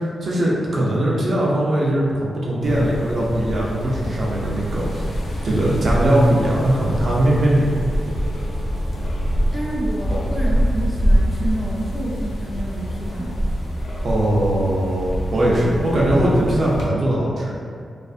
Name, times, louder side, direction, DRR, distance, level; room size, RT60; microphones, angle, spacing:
voice 1, 0.2-5.1 5.4-8.1 10.1-10.2 14.0-17.5, right 1 dB, 50° right, -5 dB, 0.5 m, -20 dB
sound 1, 2.6-16.9, equal, 80° left, 0.4 m, -25 dB
sound 2, 3.5-9.7, right 1 dB, 65° right, 0.9 m, -38 dB
voice 2, 9.5-13.3 15.5-15.8, right 1 dB, 10° left, -5 dB, 0.4 m, -29 dB
2.4 x 2.3 x 2.4 m, 2.1 s
wide cardioid pair, 145°, 0 cm